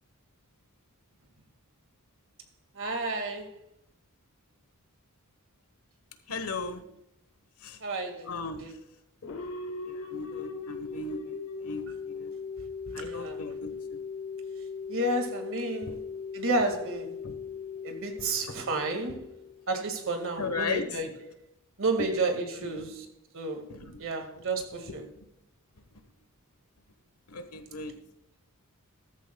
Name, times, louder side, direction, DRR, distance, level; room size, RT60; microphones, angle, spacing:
voice 1, 2.7-3.5 7.8-8.3 8.6-8.7 12.9-13.5 14.9-16.0 16.3-17.2 17.8-19.2 19.7-21.1 21.8-22.9 23.3-23.7 24.0-25.0, right 2 dB, 65° right, 5 dB, 1.9 m, -31 dB
voice 2, 6.3-6.8 7.6-7.8 8.3-8.7 9.9-12.3 12.9-14.0 15.9-16.0 17.2-17.4 18.2-18.3 19.1-19.2 20.4-21.0 22.6-22.9 23.7-24.0 25.1-25.3 27.3-27.9, left 3 dB, 85° left, 9 dB, 1.2 m, -37 dB
sound 1, 9.2-19.9, left 5 dB, 65° left, 1.2 m, -39 dB
14.0 x 14.0 x 2.3 m, 0.78 s
head